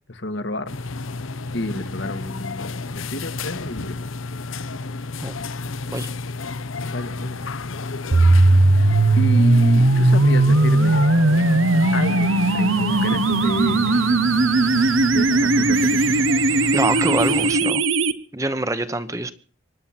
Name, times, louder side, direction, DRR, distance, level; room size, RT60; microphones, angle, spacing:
voice 1, 0.1-0.7 1.5-4.0 6.8-7.4 8.2-8.5 9.2-11.0 11.9-14.0 15.0-16.4, left 1 dB, 65° left, 9 dB, 1.7 m, -29 dB
sound 1, 0.7-17.6, left 3 dB, 90° left, 0.9 m, -31 dB
sound 2, 8.1-18.1, right 2 dB, 85° right, 1.1 m, -17 dB
voice 2, 16.7-17.9 18.3-19.3, right 2 dB, 15° right, 11 dB, 0.9 m, -25 dB
24.5 x 10.0 x 5.9 m, 0.43 s
head